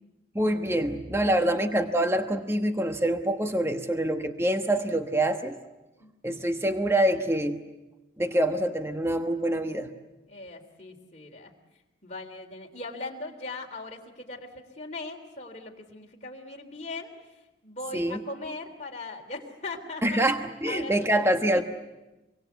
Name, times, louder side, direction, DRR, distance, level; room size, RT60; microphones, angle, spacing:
voice 1, 0.3-5.6 6.2-7.6 8.2-9.9 17.9-18.2 20.0-21.6, right 1 dB, 15° right, 6 dB, 1.2 m, -25 dB
voice 2, 1.2-1.5 6.0-6.4 10.3-11.5 12.0-20.3 20.7-21.6, left 2 dB, 35° left, 1 dB, 3.5 m, -40 dB
25.5 x 23.5 x 8.1 m, 1.0 s
head